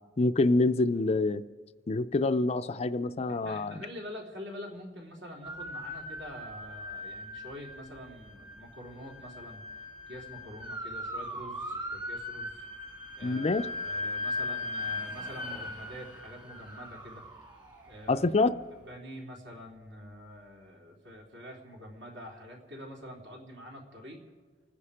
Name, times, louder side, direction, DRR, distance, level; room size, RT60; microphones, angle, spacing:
voice 1, 0.2-1.4 1.9-3.8 13.2-13.7 18.1-18.5, left 2 dB, 35° left, 10 dB, 0.4 m, -26 dB
voice 2, 3.4-9.6 10.1-12.6 13.1-17.2 17.9-18.3 18.9-24.2, equal, 70° right, -2 dB, 3.5 m, -46 dB
sound 1, 5.4-18.5, left 2 dB, 25° right, 1.8 m, -39 dB
29.0 x 9.9 x 5.0 m, 1.5 s
head